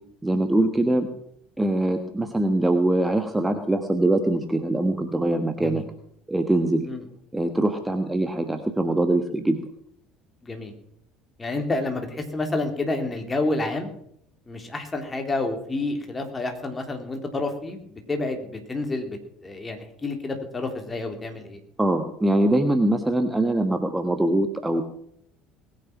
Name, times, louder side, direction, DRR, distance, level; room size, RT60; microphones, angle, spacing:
voice 1, 0.2-1.1 1.6-5.8 6.3-6.9 7.3-9.6 21.8-24.8, right 1 dB, 10° right, 6 dB, 1.4 m, -23 dB
voice 2, 11.4-13.9 14.5-21.6, left 2 dB, 20° left, 4 dB, 3.1 m, -29 dB
20.0 x 9.2 x 6.0 m, 0.71 s
figure-of-eight pair, 60°, 0 cm